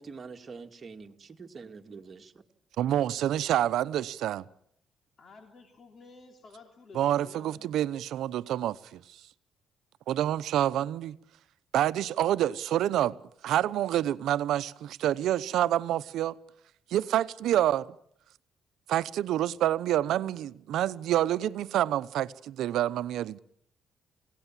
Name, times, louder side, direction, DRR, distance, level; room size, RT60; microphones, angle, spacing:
voice 1, 0.0-2.4, right 4 dB, 40° right, 2.3 m, -45 dB
voice 2, 2.8-4.4 6.9-9.0 10.1-11.2 11.7-13.2 13.4-16.4 16.9-17.9 18.9-23.4, right 12 dB, 80° right, 0.8 m, -27 dB
voice 3, 5.2-7.7, left 4 dB, 45° left, 3.3 m, -52 dB
28.5 x 17.5 x 7.5 m
cardioid pair, 90°, 0 cm